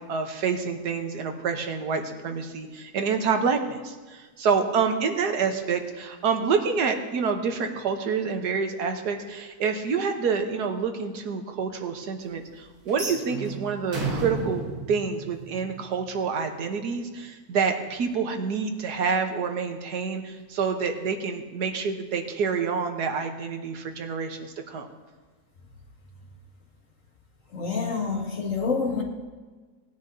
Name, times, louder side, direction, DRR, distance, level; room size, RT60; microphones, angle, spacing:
voice 1, 0.1-24.9, right 5 dB, 85° right, 5 dB, 1.6 m, -27 dB
sound 1, 12.9-16.0, right 3 dB, 65° right, 2.3 m, -33 dB
voice 2, 27.5-29.0, left 5 dB, 55° left, 0 dB, 1.9 m, -27 dB
19.0 x 10.0 x 2.7 m, 1.4 s
omnidirectional pair, 1.7 m